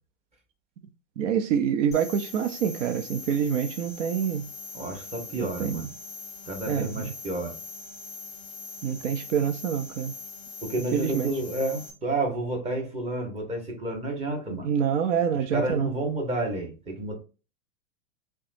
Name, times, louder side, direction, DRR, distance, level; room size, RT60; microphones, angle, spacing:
voice 1, 1.2-4.4 5.3-5.9 6.7-7.1 8.8-10.1 10.9-11.3 14.5-15.9, right 8 dB, 70° right, 0.6 m, -26 dB
sound 1, 1.9-11.9, left 4 dB, 20° left, 0.8 m, -42 dB
voice 2, 4.7-5.9 6.4-7.5 10.6-14.7 15.5-17.1, right 2 dB, 15° right, 1.2 m, -30 dB
5.5 x 2.3 x 2.6 m
hypercardioid pair, 125°, 38 cm